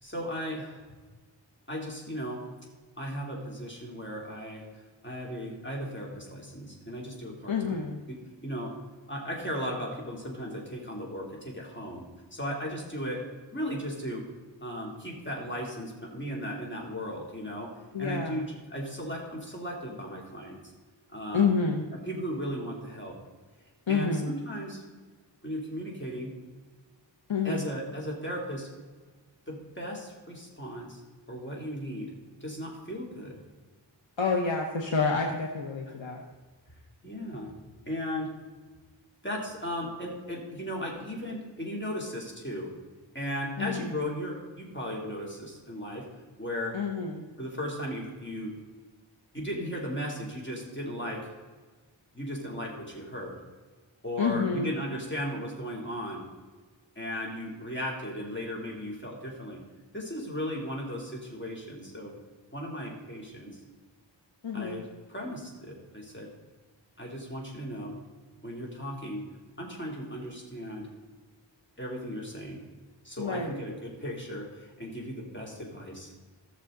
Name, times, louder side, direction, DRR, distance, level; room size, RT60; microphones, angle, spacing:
voice 1, 0.0-0.8 1.7-2.4 3.0-4.7 5.0-8.8 9.1-13.3 13.5-14.3 14.6-17.7 18.0-20.6 21.1-21.5 22.1-23.2 23.9-24.8 25.4-26.3 27.4-28.7 29.5-31.0 31.3-32.1 32.4-33.4 35.9-36.0 37.0-37.6 37.9-38.3 39.2-42.7 43.1-46.1 46.4-46.8 47.4-48.6 49.3-51.3 52.1-53.4 54.0-56.2 56.9-59.6 59.9-62.2 62.5-63.6 64.5-66.3 67.0-68.0 68.4-69.3 69.6-70.9 71.8-72.6 73.0-76.1, equal, 25° left, -2 dB, 3.2 m, -36 dB
voice 2, 7.5-8.0 17.9-18.4 21.3-21.8 23.9-24.3 27.3-27.7 34.2-36.2 43.6-44.0 46.7-47.2 54.2-54.7 64.4-64.8 73.2-73.6, left 5 dB, 90° left, 0 dB, 1.1 m, -28 dB
16.5 x 6.7 x 3.9 m, 1.4 s
wide cardioid pair, 60°, 45 cm